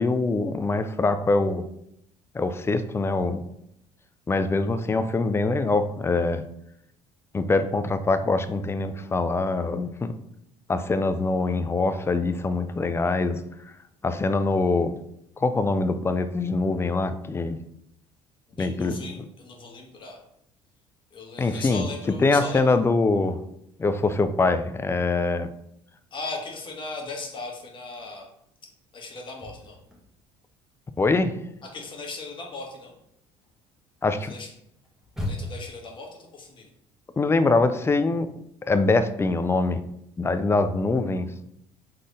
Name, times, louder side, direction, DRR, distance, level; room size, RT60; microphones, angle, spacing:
voice 1, 0.0-1.6 2.3-3.4 4.3-6.4 7.3-10.1 10.7-13.4 14.0-14.9 15.4-17.6 18.6-19.0 21.4-21.8 22.2-23.4 23.8-25.5 31.0-31.4 34.0-34.3 37.2-38.3 38.7-39.8 40.2-41.3, left 3 dB, 20° left, 10 dB, 0.4 m, -23 dB
voice 2, 18.5-20.2 21.1-22.8 26.1-28.3 28.9-29.8 31.6-32.9 34.2-34.5 35.3-36.7, left 3 dB, 40° left, 1 dB, 1.4 m, -38 dB
sound 1, 29.3-30.4 30.7-35.8, left 1 dB, 5° right, 1.5 m, -38 dB
4.1 x 3.7 x 3.3 m, 0.76 s
supercardioid pair, 85°, 13 cm